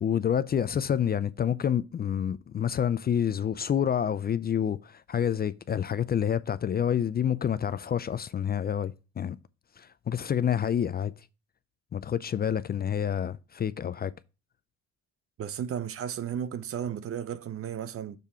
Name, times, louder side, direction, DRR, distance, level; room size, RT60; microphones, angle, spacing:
voice 1, 0.0-9.4 9.8-11.1 11.9-14.1, left 9 dB, 35° left, 0.4 m, -28 dB
voice 2, 15.4-18.2, right 9 dB, 50° right, 0.6 m, -34 dB
6.7 x 3.6 x 5.5 m
cardioid pair, 90°, 30 cm